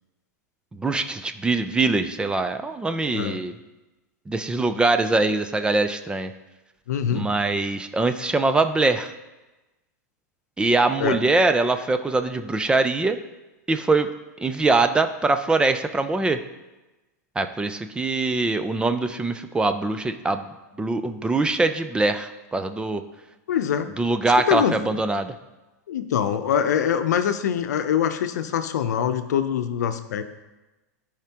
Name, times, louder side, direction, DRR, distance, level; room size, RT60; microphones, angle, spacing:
voice 1, 0.7-3.5 4.3-6.3 7.1-9.1 10.6-13.2 13.7-14.1 14.4-16.4 17.4-23.0 24.0-25.3, right 3 dB, 10° right, 9 dB, 0.5 m, -23 dB
voice 2, 6.9-7.3 11.0-11.2 23.5-23.9 24.5-24.8 25.9-30.2, left 8 dB, 75° left, 9 dB, 0.7 m, -23 dB
13.0 x 5.0 x 3.0 m, 1.1 s
hypercardioid pair, 115°, 9 cm